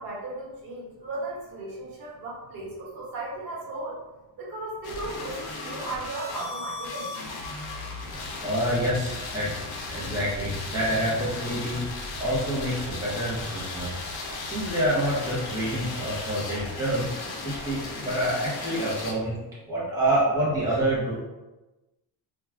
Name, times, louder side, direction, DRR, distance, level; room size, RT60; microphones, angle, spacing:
voice 1, 0.0-4.0 4.4-7.1, right 2 dB, 55° right, -5 dB, 1.1 m, -36 dB
sound 1, 4.8-19.1, left 2 dB, 60° left, 0.7 m, -36 dB
voice 2, 8.4-9.5 9.9-11.8 12.2-14.0 14.4-17.1 17.4-19.4 19.7-21.2, right 1 dB, 10° right, -8 dB, 0.7 m, -27 dB
2.4 x 2.3 x 3.2 m, 1.1 s
cardioid pair, 145°, 43 cm